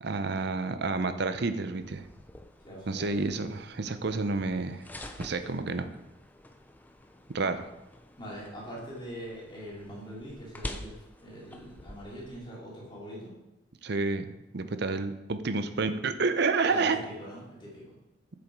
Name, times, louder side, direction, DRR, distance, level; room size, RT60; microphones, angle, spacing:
voice 1, 0.0-2.1 2.9-4.8 5.2-5.9 7.3-7.7 13.8-17.0, right 3 dB, 60° right, 10 dB, 0.7 m, -29 dB
sound 1, 1.8-12.4, left 1 dB, 10° left, 0.6 m, -47 dB
voice 2, 2.6-3.2 8.2-13.3 16.7-18.0, equal, 25° left, -5 dB, 3.0 m, -42 dB
7.8 x 6.9 x 4.7 m, 0.95 s
head